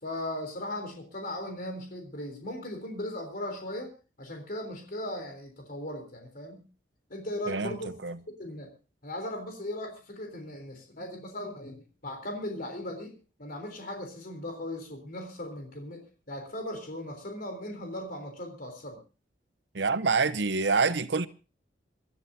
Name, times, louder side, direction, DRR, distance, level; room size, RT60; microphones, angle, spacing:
voice 1, 0.0-3.9 4.2-6.6 7.1-8.0 8.4-8.7 9.0-13.1 13.4-19.0, left 1 dB, 50° left, 3.6 m, -38 dB
voice 2, 7.5-7.8 8.0-8.2 19.7-21.3, right 4 dB, 70° right, 0.9 m, -26 dB
27.5 x 13.0 x 2.7 m
head